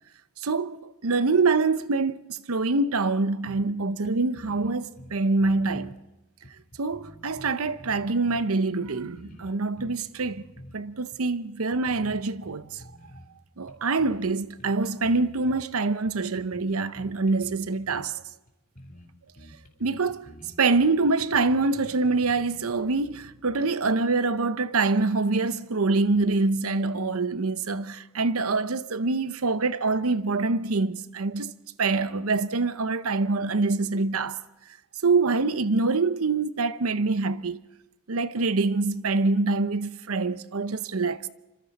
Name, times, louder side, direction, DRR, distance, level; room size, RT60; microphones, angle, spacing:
voice 1, 0.4-6.0 6.8-10.4 10.7-12.8 13.6-18.2 19.8-20.3 20.6-31.5 31.8-34.4 35.0-37.6 38.1-41.3, right 3 dB, 70° right, 0.8 m, -25 dB
sound 1, 3.5-3.8 4.0-4.1 4.3-6.0 6.4-8.5 8.8-10.8 11.1-11.3 11.7-13.3 13.7-14.3 14.6-15.7 16.0-18.1 18.5-18.6 18.8-19.1 19.4-22.7, equal, 40° left, 3.4 m, -48 dB
27.0 x 25.5 x 4.1 m
head